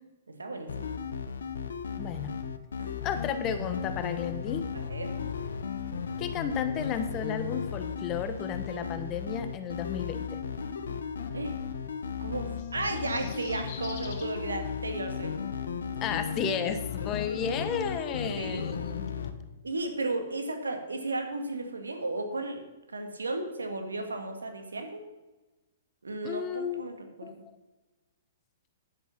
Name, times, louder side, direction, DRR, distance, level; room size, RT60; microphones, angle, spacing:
voice 1, 0.3-0.9 2.8-2.9 4.7-5.1 11.3-11.5 12.2-15.3 18.4-18.6 19.6-22.6 22.9-25.0 26.0-27.3, right 2 dB, 90° right, 5 dB, 1.9 m, -34 dB
sound 1, 0.7-19.3, left 6 dB, 75° left, 1.0 m, -35 dB
voice 2, 2.0-2.4 3.0-4.6 6.2-10.4 16.0-19.0 26.2-26.8 27.2-27.5, left 7 dB, 30° left, 9 dB, 1.1 m, -33 dB
sound 2, 12.4-14.3 15.7-15.8, left 7 dB, 50° left, 2.0 m, -46 dB
10.0 x 7.9 x 5.9 m, 1.1 s
hypercardioid pair, 125°, 0 cm